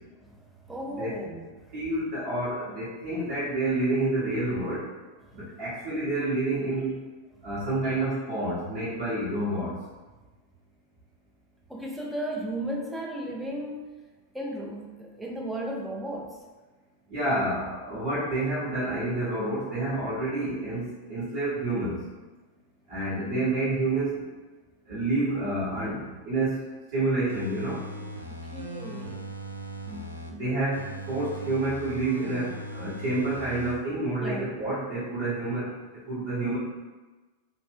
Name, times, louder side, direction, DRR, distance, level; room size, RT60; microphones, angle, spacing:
voice 1, 0.2-1.7 5.3-5.7 7.4-7.5 11.7-13.9 14.3-16.4 25.3-25.4 28.3-29.3 34.2-34.5, right 1 dB, 5° right, -1 dB, 0.5 m, -35 dB
voice 2, 1.7-4.8 5.3-6.9 7.4-9.7 17.1-22.0 22.9-24.2 24.9-26.6 26.9-27.8 29.9-30.0 30.3-35.7 36.1-36.6, right 2 dB, 45° right, -10 dB, 0.9 m, -28 dB
sound 1, 27.3-30.3 30.7-33.7 34.1-34.2, right 1 dB, 90° right, 0.3 m, -39 dB
2.5 x 2.1 x 3.3 m, 1.2 s
figure-of-eight pair, 90°, 0 cm